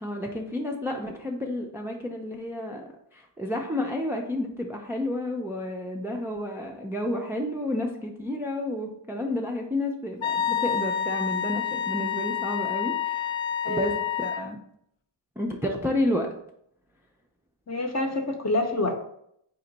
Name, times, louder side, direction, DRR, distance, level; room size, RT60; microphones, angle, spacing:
voice 1, 0.0-13.3 13.7-14.6 15.4-16.3, left 1 dB, 5° right, 2 dB, 0.3 m, -31 dB
Wind instrument woodwind instrument, 10.2-14.5, left 9 dB, 75° left, 0.5 m, -28 dB
voice 2, 13.6-14.0 17.7-19.0, left 2 dB, 35° left, 3 dB, 0.7 m, -27 dB
4.3 x 2.9 x 3.9 m, 0.72 s
wide cardioid pair, 115°, 47 cm